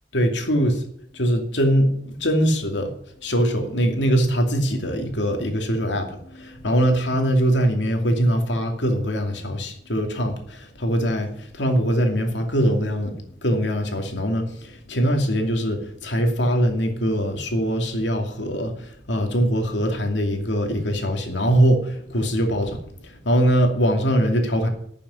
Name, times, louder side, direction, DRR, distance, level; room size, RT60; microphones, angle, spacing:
voice 1, 0.1-0.8 1.1-2.9 3.2-13.1 13.4-24.7, equal, 75° left, 4 dB, 2.6 m, -22 dB
12.0 x 7.0 x 9.7 m, 0.68 s
head